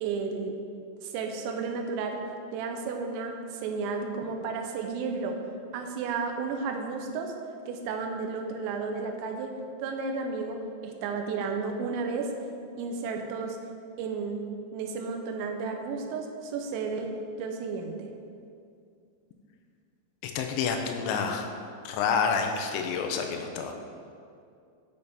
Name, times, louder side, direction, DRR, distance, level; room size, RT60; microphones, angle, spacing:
voice 1, 0.0-0.6 1.0-2.2 2.5-5.4 5.7-7.3 7.7-9.5 9.8-12.3 12.8-13.6 14.0-14.4 14.7-17.1 17.4-18.1, right 4 dB, 85° right, 3 dB, 3.0 m, -32 dB
voice 2, 20.2-21.5 21.8-23.7, left 6 dB, 85° left, 4 dB, 3.0 m, -28 dB
8.4 x 6.8 x 3.4 m, 2.4 s
omnidirectional pair, 5.1 m